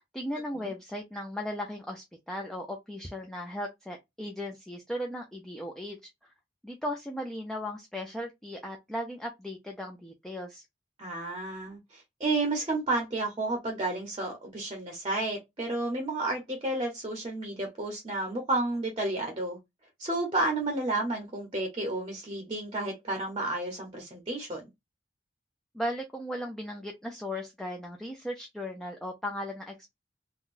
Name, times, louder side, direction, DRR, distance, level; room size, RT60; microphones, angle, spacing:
voice 1, 0.1-6.0 6.6-10.6 25.7-29.9, left 1 dB, 5° left, 0.4 m, -37 dB
voice 2, 11.0-19.6 20.0-24.6, right 2 dB, 30° right, 0.8 m, -31 dB
3.7 x 2.2 x 2.4 m
head